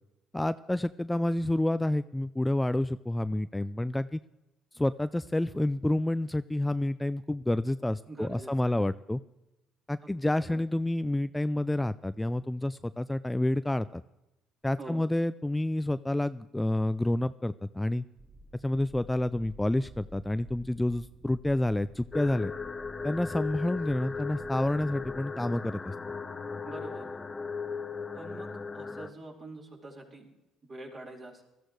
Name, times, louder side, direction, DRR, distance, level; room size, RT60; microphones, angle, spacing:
voice 1, 0.3-4.2 4.7-9.2 9.9-14.0 14.6-18.0 18.6-22.5 23.0-25.9, left 1 dB, 10° left, 14 dB, 0.4 m, -29 dB
voice 2, 8.1-8.8 10.0-10.2 10.5-10.6 14.8-15.0 26.6-27.1 28.1-30.3 30.7-31.4, right 2 dB, 40° right, -2 dB, 4.5 m, -45 dB
sound 1, 18.2-25.2, right 1 dB, 15° right, 1.2 m, -52 dB
sound 2, 22.1-29.1, left 5 dB, 25° left, 0.8 m, -37 dB
20.5 x 13.5 x 3.2 m, 0.95 s
hypercardioid pair, 60°, 0 cm